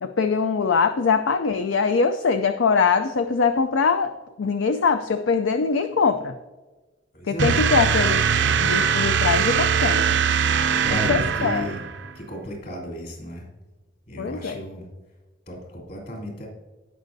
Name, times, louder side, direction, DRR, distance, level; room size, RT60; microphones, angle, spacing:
voice 1, 0.0-4.1 4.4-6.3 7.3-8.3 8.6-10.2 11.1-11.7 14.2-14.6, left 5 dB, 70° left, 8 dB, 0.5 m, -22 dB
voice 2, 7.1-7.6 8.4-9.1 10.7-11.8 12.2-13.5 14.1-14.9 15.5-16.5, equal, 50° left, -2 dB, 3.3 m, -34 dB
sound 1, 7.4-12.1, right 7 dB, 60° right, 0.5 m, -21 dB
17.0 x 6.1 x 2.7 m, 1.2 s
head